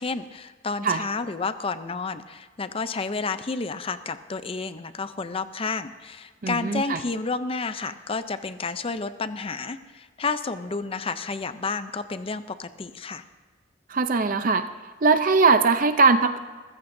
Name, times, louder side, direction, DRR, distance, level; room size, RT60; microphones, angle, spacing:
voice 1, 0.0-13.2, left 4 dB, 30° left, 11 dB, 0.5 m, -31 dB
voice 2, 6.4-7.0 13.9-14.6 15.0-16.4, right 4 dB, 45° right, 9 dB, 0.6 m, -20 dB
22.0 x 14.5 x 2.6 m, 1.5 s
head